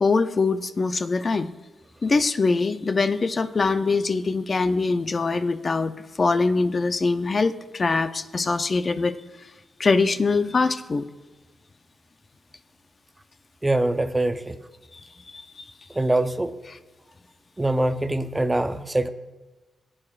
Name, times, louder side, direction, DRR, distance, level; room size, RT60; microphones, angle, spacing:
voice 1, 0.0-1.5 2.0-9.2 9.8-11.1 15.3-15.6, left 4 dB, 45° left, 10 dB, 0.5 m, -23 dB
voice 2, 13.6-14.6 15.9-16.5 17.6-19.1, right 1 dB, 20° right, 9 dB, 0.6 m, -23 dB
17.0 x 8.7 x 2.5 m, 1.2 s
cardioid pair, 65°, 0 cm